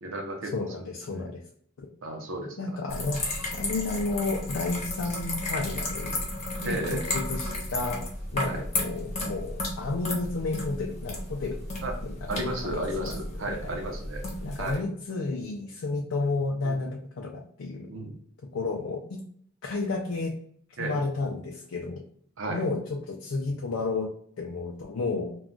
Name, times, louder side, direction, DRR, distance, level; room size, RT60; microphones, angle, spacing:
voice 1, 0.0-0.9 1.1-1.3 2.0-2.8 6.6-7.1 8.4-8.7 11.8-11.9 12.3-14.3 14.6-14.8 16.6-16.8 17.9-18.2 20.8-21.0 22.4-22.6, right 1 dB, 65° right, 2 dB, 0.7 m, -34 dB
voice 2, 0.5-1.4 1.8-1.9 2.6-6.2 6.6-8.0 8.3-11.5 12.0-13.1 13.5-13.9 14.4-17.9 18.5-19.2 19.6-20.3 20.8-22.0 22.5-24.1 24.4-25.3, left 3 dB, 85° left, 0 dB, 0.5 m, -32 dB
sound 1, 2.9-14.8, left 1 dB, 30° left, 0.8 m, -33 dB
2.3 x 2.3 x 3.7 m, 0.62 s
head